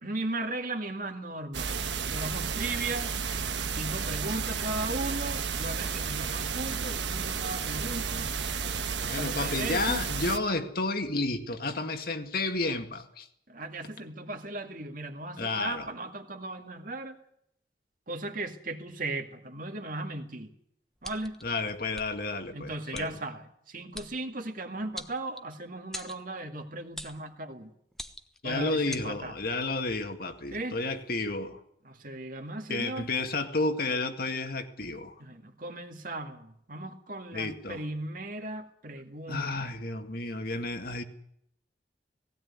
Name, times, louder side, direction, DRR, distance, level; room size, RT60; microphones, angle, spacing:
voice 1, 0.0-1.8 2.1-3.1 3.7-8.3 9.0-10.0 13.5-17.2 18.1-20.5 21.0-21.4 22.5-27.7 28.4-29.3 30.5-30.8 31.8-33.1 35.2-39.5, right 2 dB, 50° right, 5 dB, 2.1 m, -37 dB
sound 1, 1.5-10.4, right 5 dB, 85° right, 1.4 m, -32 dB
voice 2, 9.1-13.3 15.4-15.9 21.4-23.1 28.4-31.6 32.7-35.2 37.3-37.8 39.3-41.0, left 3 dB, 55° left, 6 dB, 1.9 m, -31 dB
sound 2, 21.0-21.4 21.9-22.1 22.9-23.1 23.9-24.1 25.0-25.6 25.9-26.2 27.0-27.2 27.9-28.4 28.9-29.1, left 1 dB, ahead, 1.1 m, -41 dB
18.0 x 17.0 x 9.7 m, 0.73 s
head